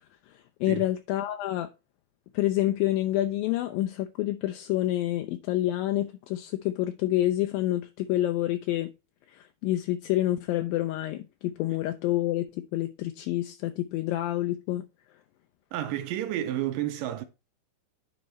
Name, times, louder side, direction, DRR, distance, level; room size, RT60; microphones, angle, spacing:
voice 1, 0.3-1.7 2.3-8.9 9.3-14.9, left 14 dB, 80° left, 2.2 m, -28 dB
voice 2, 15.7-17.2, right 12 dB, 80° right, 2.0 m, -31 dB
9.7 x 5.1 x 4.3 m
omnidirectional pair, 4.4 m